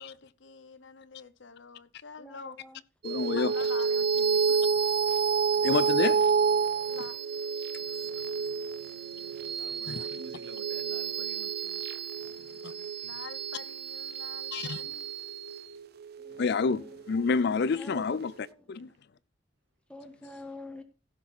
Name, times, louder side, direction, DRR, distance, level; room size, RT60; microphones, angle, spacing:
voice 1, 0.0-2.6 3.3-4.8 6.9-7.2 13.0-15.1, left 4 dB, 80° left, 1.0 m, -46 dB
voice 2, 2.2-2.8 16.2-17.0 17.8-18.1 19.9-20.8, left 2 dB, 5° left, 1.4 m, -46 dB
voice 3, 3.0-3.5 5.6-6.2 9.9-10.1 14.5-14.8 16.4-18.9, left 4 dB, 60° left, 0.4 m, -28 dB
sound 1, 3.0-17.8, right 5 dB, 60° right, 0.7 m, -30 dB
voice 4, 9.6-11.9 12.4-13.2, right 1 dB, 85° right, 1.8 m, -52 dB
16.0 x 6.2 x 4.2 m
head